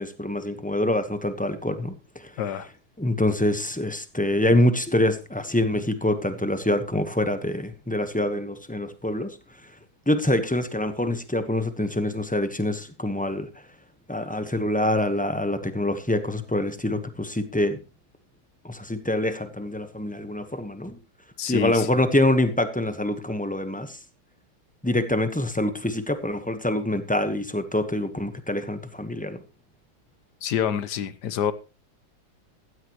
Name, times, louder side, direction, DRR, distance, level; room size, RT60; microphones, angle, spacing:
voice 1, 0.0-2.2 3.0-9.4 10.1-13.5 14.1-17.8 18.6-21.0 21.4-24.0 24.8-29.4, left 1 dB, 5° left, 9 dB, 0.7 m, -25 dB
voice 2, 21.4-21.9 30.4-31.5, left 8 dB, 60° left, 15 dB, 1.4 m, -27 dB
16.0 x 13.5 x 3.1 m, 0.29 s
omnidirectional pair, 2.2 m